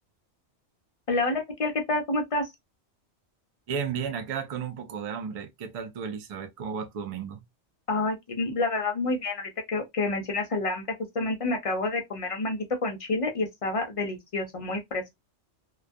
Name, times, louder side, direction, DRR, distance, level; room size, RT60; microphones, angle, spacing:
voice 1, 1.1-2.5 7.9-10.9 11.1-15.0, left 2 dB, 50° left, 0.4 m, -28 dB
voice 2, 3.7-7.4, right 6 dB, 70° right, 0.3 m, -33 dB
2.2 x 2.2 x 2.5 m
omnidirectional pair, 1.2 m